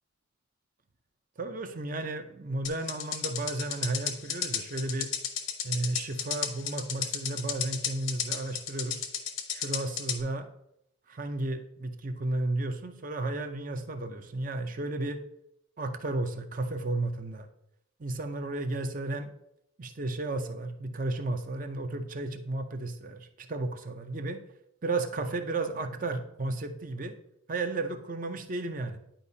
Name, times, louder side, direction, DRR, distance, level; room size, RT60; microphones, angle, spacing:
voice 1, 1.4-5.1 5.6-9.1 9.5-10.5 11.1-15.2 15.8-17.5 18.0-19.3 19.8-24.4 24.8-27.2 27.5-29.0, right 2 dB, 40° right, 7 dB, 0.6 m, -33 dB
sound 1, 2.6-10.2, left 8 dB, 85° left, 0.9 m, -33 dB
10.0 x 4.9 x 2.7 m, 0.78 s
head